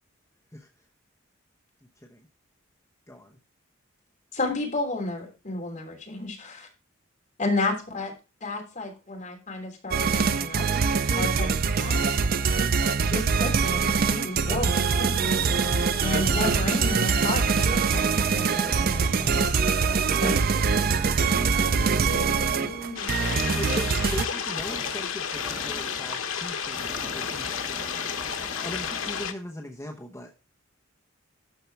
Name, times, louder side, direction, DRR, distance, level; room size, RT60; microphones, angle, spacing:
voice 1, 2.0-2.3 3.1-3.4 23.6-27.5 27.9-30.3, equal, 15° left, 1 dB, 0.9 m, -40 dB
voice 2, 4.3-6.7 7.4-8.1 8.4-10.6 11.1-12.1 13.0-15.4 16.0-19.6 20.2-20.4, left 2 dB, 40° left, 0 dB, 3.2 m, -32 dB
sound 1, 9.9-24.3, right 5 dB, 45° right, 0.5 m, -24 dB
sound 2, 15.2-23.1 24.5-26.2 26.6-29.2, equal, 15° right, 1.9 m, -42 dB
voice 3, 21.2-23.7, equal, 60° left, 0 dB, 2.7 m, -39 dB
sound 3, 23.0-29.3, left 7 dB, 90° left, 1.0 m, -31 dB
13.0 x 4.8 x 4.5 m, 0.32 s
head